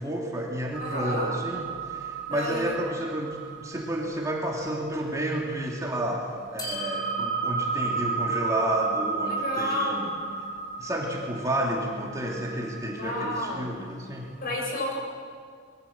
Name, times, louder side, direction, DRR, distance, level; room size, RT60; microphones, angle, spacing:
voice 1, 0.0-10.1 10.8-14.3, right 1 dB, 15° right, -2 dB, 2.9 m, -31 dB
sound 1, 0.7-5.9 6.6-14.1, right 4 dB, 20° left, 5.7 m, -33 dB
voice 2, 0.8-1.3 2.3-2.7 9.2-10.1 13.0-13.7 14.4-15.0, left 1 dB, 45° left, -1 dB, 7.5 m, -31 dB
25.5 x 22.0 x 7.4 m, 2.1 s
head